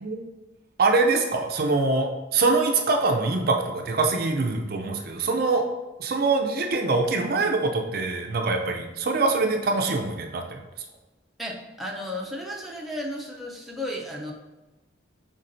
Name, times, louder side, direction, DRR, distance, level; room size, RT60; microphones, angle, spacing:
voice 1, 0.8-5.6 6.0-10.6, right 3 dB, 50° right, 3 dB, 0.5 m, -24 dB
voice 2, 11.4-14.3, left 1 dB, ahead, -3 dB, 0.5 m, -34 dB
5.6 x 3.6 x 2.6 m, 1.1 s
head